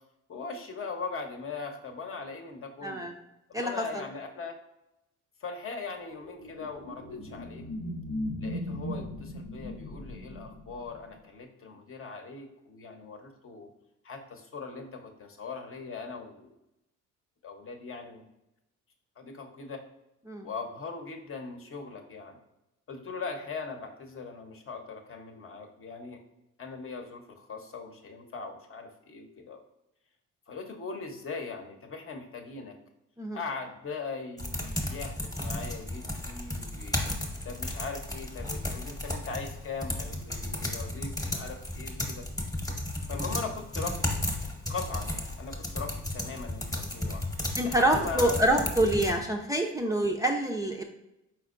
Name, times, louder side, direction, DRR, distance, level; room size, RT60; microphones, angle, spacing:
voice 1, 0.3-3.1 3.5-4.6 5.4-7.7 8.4-13.7 14.0-16.5 17.4-18.2 19.2-19.8 20.4-22.4 22.9-26.2 26.6-29.6 30.5-32.7 33.3-37.0 37.4-42.3 43.1-44.1 44.7-47.2 47.6-48.7, left 4 dB, 45° left, 4 dB, 0.8 m, -40 dB
voice 2, 2.8-3.1 3.5-4.0 20.3-20.5 33.2-33.4 47.6-50.8, right 1 dB, 10° right, 0 dB, 0.4 m, -26 dB
sound 1, 6.1-11.1, left 1 dB, 90° left, 0.7 m, -38 dB
sound 2, 34.4-49.1, left 1 dB, 10° left, 0.9 m, -34 dB
4.5 x 4.4 x 2.5 m, 0.89 s
cardioid pair, 90°, 30 cm